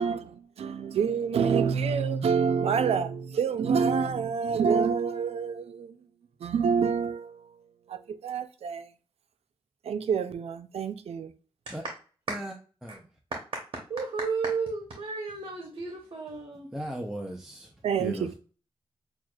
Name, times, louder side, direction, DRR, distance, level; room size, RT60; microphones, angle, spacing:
voice 1, 0.0-5.9 6.4-7.4 7.9-8.9 9.9-11.3 17.8-18.3, right 6 dB, 85° right, 0.4 m, -27 dB
voice 2, 13.3-13.6 13.9-16.7, right 4 dB, 55° right, 0.8 m, -33 dB
voice 3, 16.7-18.3, equal, 5° right, 0.4 m, -37 dB
6.0 x 2.4 x 2.3 m
wide cardioid pair, 145°, 10 cm